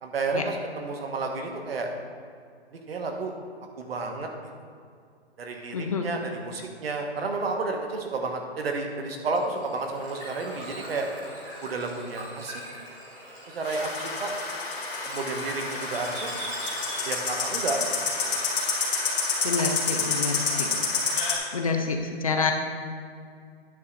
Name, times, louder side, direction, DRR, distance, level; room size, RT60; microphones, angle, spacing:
voice 1, 0.0-1.9 2.7-3.3 3.8-4.3 5.4-11.1 11.6-12.6 13.5-14.3 15.0-16.3 17.0-17.8 18.2-18.4, right 3 dB, 65° right, 3 dB, 1.3 m, -31 dB
voice 2, 5.7-6.1 19.4-20.7 21.5-22.5, left 4 dB, 35° left, 4 dB, 0.5 m, -27 dB
Bird / Water, 9.2-17.6, right 1 dB, 15° right, 1.5 m, -41 dB
sound 1, 13.6-21.4, left 4 dB, 50° left, 2.1 m, -29 dB
9.6 x 3.6 x 6.5 m, 2.2 s
hypercardioid pair, 170°, 33 cm